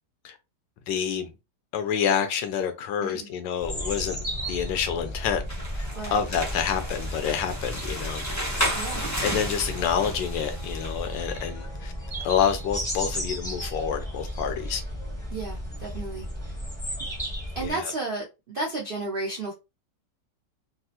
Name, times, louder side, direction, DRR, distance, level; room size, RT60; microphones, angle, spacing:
voice 1, 0.9-1.3 1.7-4.2 4.5-5.4 5.7-8.7 9.2-11.9 12.2-14.8 17.6-17.9, left 8 dB, 90° left, 1.3 m, -28 dB
sound 1, 3.6-17.7, equal, 5° left, 0.9 m, -34 dB
sound 2, 5.4-11.0, equal, 30° left, 0.3 m, -33 dB
Bowed string instrument, 8.7-13.0, equal, 60° left, 1.2 m, -50 dB
voice 2, 15.3-16.3 17.5-19.5, right 2 dB, 75° right, 0.5 m, -32 dB
3.5 x 2.0 x 2.8 m
omnidirectional pair, 1.9 m